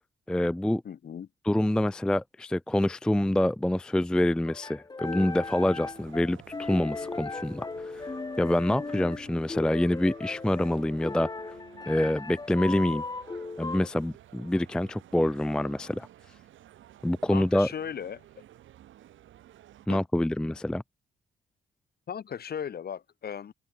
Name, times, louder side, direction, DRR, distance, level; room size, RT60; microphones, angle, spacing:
voice 1, 0.3-0.8 1.4-8.1 8.4-11.3 11.9-13.0 13.6-16.1 17.0-17.7 19.9-20.8, left 1 dB, 5° left, 0.4 m, -26 dB
voice 2, 0.8-1.3 8.9-9.2 17.3-18.2 19.9-20.0 22.1-23.5, left 8 dB, 50° left, 2.1 m, -37 dB
sound 1, 4.5-13.9, left 3 dB, 20° left, 1.3 m, -37 dB
sound 2, 5.0-19.9, right 12 dB, 80° right, 4.6 m, -53 dB
open air
cardioid pair, 90°, 20 cm